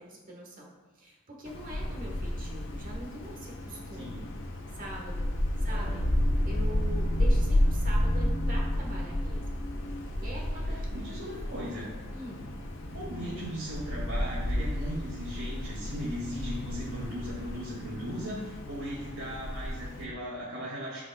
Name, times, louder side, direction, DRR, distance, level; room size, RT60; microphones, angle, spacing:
voice 1, 0.0-4.3 4.7-5.3 5.6-6.1 6.4-9.4 10.2-11.1 11.5-11.7 12.1-12.5, right 1 dB, 40° right, -2 dB, 1.5 m, -43 dB
Wind, 1.4-20.0, left 1 dB, 65° left, 1.0 m, -31 dB
voice 2, 3.9-4.3 5.6-6.0 10.5-11.9 12.9-21.0, equal, 65° right, -9 dB, 2.0 m, -38 dB
11.5 x 4.9 x 2.4 m, 1.2 s
head